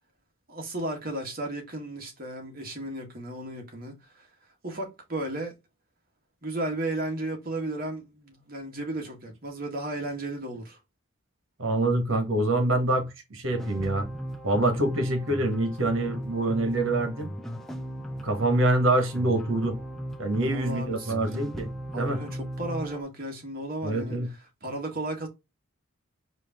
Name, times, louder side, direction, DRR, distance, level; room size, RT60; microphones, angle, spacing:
voice 1, 0.5-4.3 4.6-5.5 6.4-10.8 20.5-21.3 21.9-24.2 24.6-25.3, right 1 dB, 45° right, 1.7 m, -34 dB
voice 2, 11.6-14.1 14.4-17.3 18.2-19.8 20.2-21.7 21.9-22.2 23.8-24.3, right 2 dB, 70° right, 1.6 m, -25 dB
sound 1, 13.5-23.0, equal, ahead, 0.5 m, -37 dB
5.0 x 2.8 x 3.6 m
head